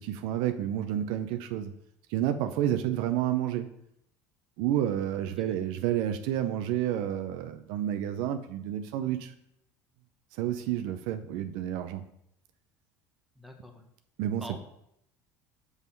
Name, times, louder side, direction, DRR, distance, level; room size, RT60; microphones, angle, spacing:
voice 1, 0.0-1.7 2.1-3.7 4.6-9.3 10.4-12.0 14.2-14.4, right 11 dB, 75° right, 8 dB, 0.5 m, -30 dB
voice 2, 13.3-13.8 14.4-14.6, left 1 dB, ahead, 3 dB, 1.2 m, -45 dB
5.5 x 4.8 x 5.4 m, 0.76 s
supercardioid pair, 95°, 8 cm